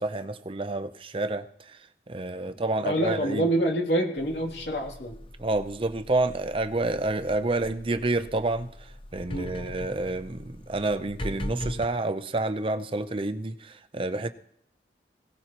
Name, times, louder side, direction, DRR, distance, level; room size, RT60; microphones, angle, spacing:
voice 1, 0.0-1.5 2.1-3.5 5.4-8.7 9.1-14.3, right 2 dB, 30° right, 0.7 m, -29 dB
voice 2, 2.8-5.2 9.3-9.5, right 1 dB, 70° left, 2.8 m, -26 dB
sound 1, 4.2-11.9, left 1 dB, 30° left, 0.7 m, -40 dB
21.0 x 17.5 x 3.0 m
head